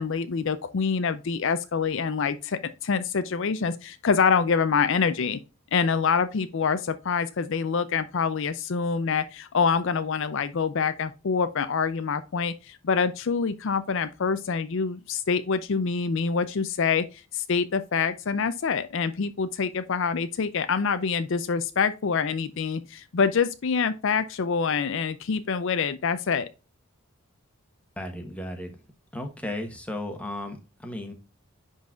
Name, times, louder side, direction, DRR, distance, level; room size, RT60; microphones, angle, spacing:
voice 1, 0.0-5.4 5.7-26.5, left 5 dB, 55° left, 0.5 m, -26 dB
voice 2, 28.0-28.7 29.1-31.1, left 1 dB, 5° left, 1.1 m, -35 dB
10.5 x 4.0 x 2.4 m
head